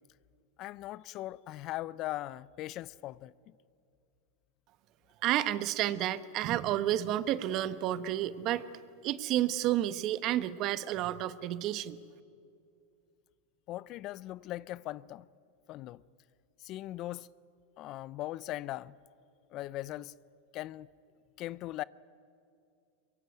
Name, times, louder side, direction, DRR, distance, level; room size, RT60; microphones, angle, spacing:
voice 1, 0.6-3.3 13.7-15.3 15.7-16.0 16.6-17.3 17.8-19.0 19.5-20.1 20.5-20.9 21.4-21.8, left 15 dB, 45° left, 0.5 m, -39 dB
voice 2, 5.2-12.0, right 13 dB, 45° right, 1.1 m, -31 dB
23.0 x 22.0 x 9.3 m
hypercardioid pair, 120°, 0 cm